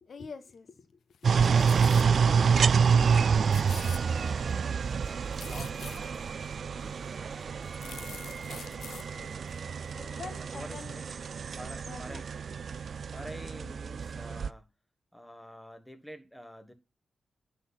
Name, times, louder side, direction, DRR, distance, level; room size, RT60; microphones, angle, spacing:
voice 1, 0.0-0.9 1.2-1.3 3.1-3.2 8.1-8.2 8.6-9.4 9.9-11.0 11.8-12.2 13.5-13.7, left 5 dB, 65° left, 1.1 m, -46 dB
sound 1, 1.1-2.1 2.6-2.7 2.9-3.2 3.4-4.5 4.9-6.3 6.9-7.0 7.4-9.0 9.5-9.6, left 8 dB, 90° left, 0.7 m, -46 dB
sound 2, 1.2-14.5, right 6 dB, 65° right, 0.4 m, -28 dB
voice 2, 1.3-3.3 3.8-7.0 7.7-8.2 10.0-11.0 11.6-12.3 13.1-14.7 15.1-16.7, equal, 5° left, 1.5 m, -47 dB
sound 3, 2.6-8.3, right 4 dB, 45° right, 1.0 m, -53 dB
10.5 x 4.1 x 5.8 m
cardioid pair, 75°, 0 cm